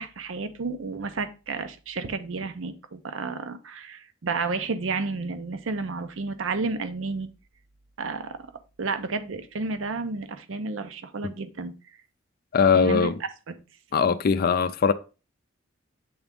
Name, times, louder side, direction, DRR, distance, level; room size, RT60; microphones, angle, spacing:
voice 1, 0.0-7.3 8.0-8.5 8.8-11.7 12.7-13.1 13.5-13.6, right 3 dB, 80° right, 0.6 m, -31 dB
voice 2, 12.5-13.1 13.9-14.9, left 6 dB, 50° left, 0.4 m, -20 dB
7.9 x 3.6 x 3.5 m
head